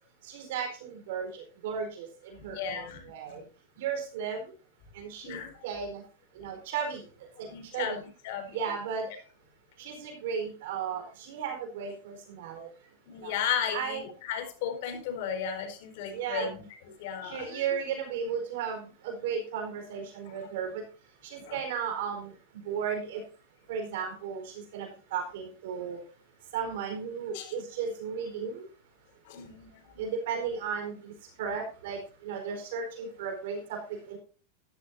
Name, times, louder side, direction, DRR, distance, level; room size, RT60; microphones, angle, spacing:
voice 1, 0.2-3.4 3.8-4.4 4.9-5.4 5.6-6.0 6.4-7.0 7.4-7.5 7.7-8.0 8.5-9.0 9.8-12.7 13.2-13.3 13.7-14.0 16.1-16.5 17.2-20.8 21.2-22.3 22.6-23.2 23.7-26.0 26.5-28.7 30.0-31.1 31.4-33.8 34.1-34.2, right 6 dB, 70° right, 3 dB, 4.3 m, -35 dB
voice 2, 2.4-3.4 5.2-5.5 7.5-8.6 9.1-9.2 13.1-17.6 21.4-21.6 27.3-27.5 29.3-30.0, left 7 dB, 60° left, 5 dB, 4.2 m, -35 dB
13.5 x 11.0 x 2.7 m, 0.37 s
supercardioid pair, 145°, 0 cm